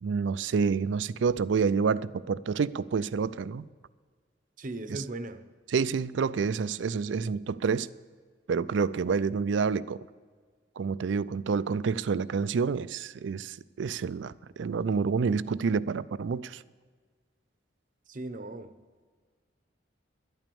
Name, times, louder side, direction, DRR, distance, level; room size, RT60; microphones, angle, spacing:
voice 1, 0.0-3.7 4.9-5.0 5.7-7.9 8.5-10.0 10.8-16.6, right 5 dB, 75° right, 0.4 m, -28 dB
voice 2, 4.6-5.4 18.1-18.7, right 2 dB, 45° right, 0.7 m, -38 dB
12.0 x 9.0 x 6.9 m
head